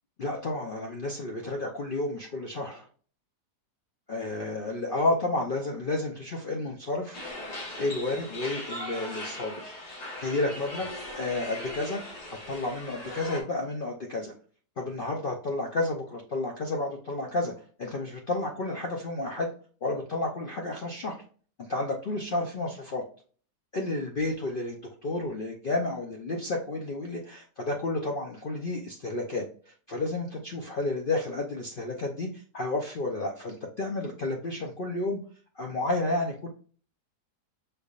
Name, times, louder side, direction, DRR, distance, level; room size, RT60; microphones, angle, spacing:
voice 1, 0.2-2.9 4.1-7.2 7.8-9.7 10.2-12.0 12.3-14.3 14.8-17.5 17.8-19.5 19.8-21.2 21.6-23.0 23.7-35.2 35.6-36.5, left 2 dB, 65° left, 1 dB, 0.5 m, -31 dB
sound 1, 7.1-13.4, left 1 dB, 85° left, 2.0 m, -39 dB
6.0 x 3.4 x 2.4 m, 0.43 s
omnidirectional pair, 1.8 m